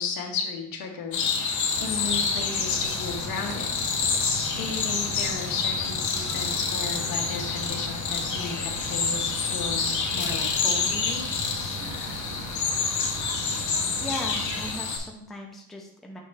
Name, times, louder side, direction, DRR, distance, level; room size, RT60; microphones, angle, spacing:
voice 1, 0.0-3.7 4.6-11.3, left 5 dB, 75° left, 2 dB, 1.2 m, -34 dB
sound 1, 1.1-15.0, left 5 dB, 55° left, 1.1 m, -28 dB
sound 2, 1.7-14.7, right 2 dB, 50° right, 0.8 m, -39 dB
voice 2, 14.0-16.2, left 1 dB, ahead, 0 dB, 0.5 m, -37 dB
6.6 x 3.2 x 4.7 m, 0.72 s
cardioid pair, 180°, 35 cm